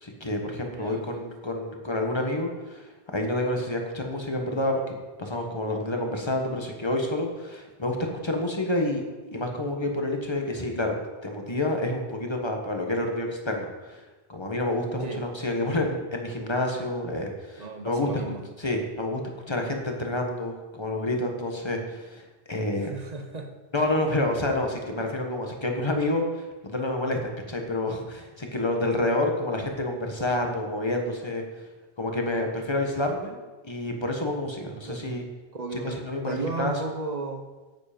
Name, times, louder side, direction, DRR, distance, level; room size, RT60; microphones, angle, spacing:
voice 1, 0.0-2.9 3.1-9.0 9.3-11.0 11.2-14.0 14.3-18.1 18.6-19.2 19.5-22.9 23.7-31.4 32.0-35.2 35.7-36.7, left 1 dB, 25° left, 2 dB, 1.4 m, -28 dB
voice 2, 0.7-1.2 15.0-15.3 17.6-18.4 22.9-23.5 23.9-24.0 34.9-35.2 35.5-36.0 36.2-37.4, right 3 dB, 40° right, 5 dB, 1.0 m, -34 dB
9.3 x 8.3 x 5.2 m, 1.2 s
omnidirectional pair, 1.1 m